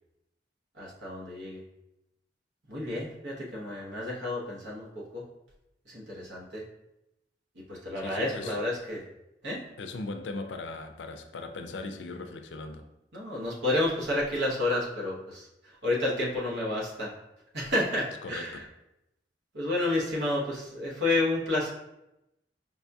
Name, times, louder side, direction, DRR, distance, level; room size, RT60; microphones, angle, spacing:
voice 1, 0.7-1.6 2.7-5.2 5.9-6.6 7.7-9.1 9.4-9.6 13.1-17.1 17.5-18.6 19.5-21.7, left 2 dB, 70° right, -4 dB, 1.0 m, -30 dB
voice 2, 8.0-8.6 9.8-12.9 18.2-18.6, left 3 dB, 80° left, 6 dB, 0.4 m, -38 dB
5.2 x 2.3 x 2.6 m, 0.89 s
head